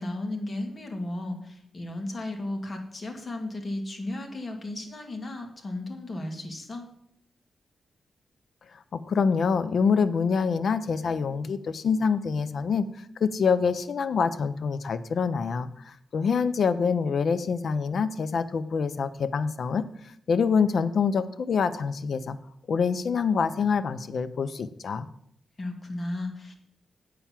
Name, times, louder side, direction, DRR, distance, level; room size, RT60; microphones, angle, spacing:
voice 1, 0.0-6.9 25.6-26.5, left 1 dB, 30° left, 3 dB, 1.9 m, -34 dB
voice 2, 8.9-12.9 13.2-19.9 20.3-22.4 22.7-25.1, left 5 dB, 65° left, 12 dB, 0.6 m, -26 dB
8.5 x 5.7 x 7.4 m, 0.69 s
wide cardioid pair, 110°, 0 cm